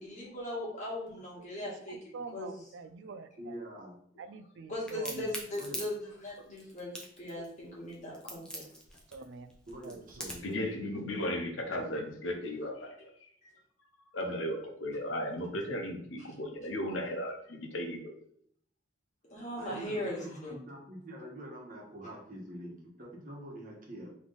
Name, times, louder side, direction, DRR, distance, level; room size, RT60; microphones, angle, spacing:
voice 1, 0.0-1.9 2.3-2.5 4.7-8.6 19.3-20.5, left 1 dB, 40° left, -5 dB, 1.6 m, -39 dB
voice 2, 1.4-3.6 4.2-5.3 9.1-9.5 9.8-10.4, right 4 dB, 65° right, 10 dB, 0.3 m, -46 dB
voice 3, 3.4-4.0 5.5-5.8 9.7-11.2 19.6-24.1, right 1 dB, 45° right, -2 dB, 1.3 m, -45 dB
Crack, 4.9-10.6, equal, 5° left, 0.8 m, -42 dB
voice 4, 10.4-13.3 14.1-18.1, left 1 dB, 85° left, 3 dB, 0.9 m, -36 dB
3.5 x 3.1 x 3.9 m, 0.63 s
head